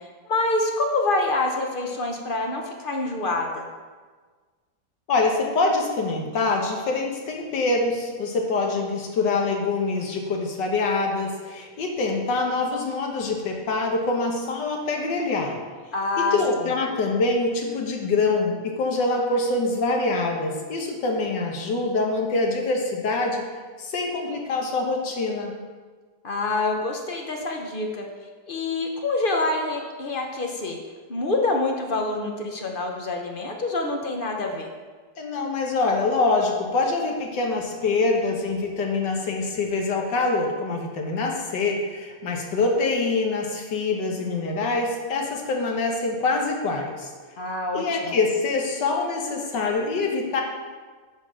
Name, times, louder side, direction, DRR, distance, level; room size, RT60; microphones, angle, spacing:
voice 1, 0.3-3.6 15.9-16.7 26.2-28.1 28.5-30.8 31.1-34.7 47.4-48.2, left 2 dB, 45° left, 2 dB, 0.7 m, -26 dB
voice 2, 5.1-15.6 16.2-23.5 23.8-25.5 35.2-47.1 47.7-50.4, left 3 dB, 80° left, 1 dB, 1.8 m, -25 dB
9.6 x 4.0 x 6.1 m, 1.5 s
omnidirectional pair, 1.9 m